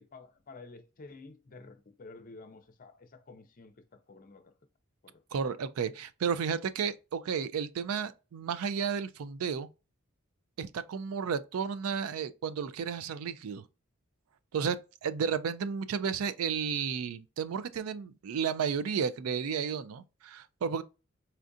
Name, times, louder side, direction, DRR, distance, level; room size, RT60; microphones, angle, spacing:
voice 1, 0.0-4.5 5.0-5.2, left 3 dB, 40° left, 0.5 m, -51 dB
voice 2, 5.3-9.7 10.6-13.6 14.5-20.8, right 6 dB, 85° right, 0.4 m, -32 dB
4.4 x 2.5 x 2.6 m
head